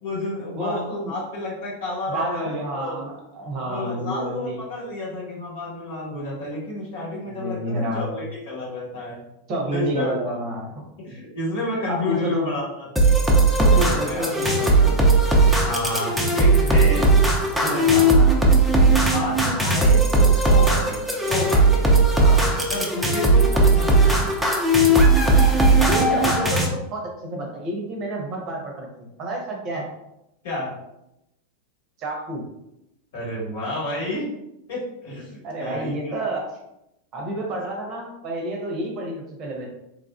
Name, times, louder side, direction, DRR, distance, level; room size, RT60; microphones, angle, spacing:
voice 1, 0.0-3.0 3.7-9.2 9.7-10.1 11.0-12.9 13.7-14.9 15.6-17.1 17.6-18.1 19.0-21.8 22.7-24.3 30.4-30.8 33.1-34.2 34.7-36.2, left 2 dB, 55° left, -5 dB, 1.4 m, -30 dB
voice 2, 0.6-1.1 2.1-4.6 7.3-8.3 9.5-10.8 11.9-12.5 13.6-14.7 18.1-18.4 22.2-22.5 25.8-28.9 29.2-29.9 32.0-32.4 35.4-36.5 37.1-39.7, right 1 dB, 35° right, 0 dB, 0.8 m, -29 dB
sound 1, 13.0-26.7, right 2 dB, 5° right, 0.5 m, -17 dB
3.7 x 2.3 x 2.3 m, 0.86 s
figure-of-eight pair, 90°, 0 cm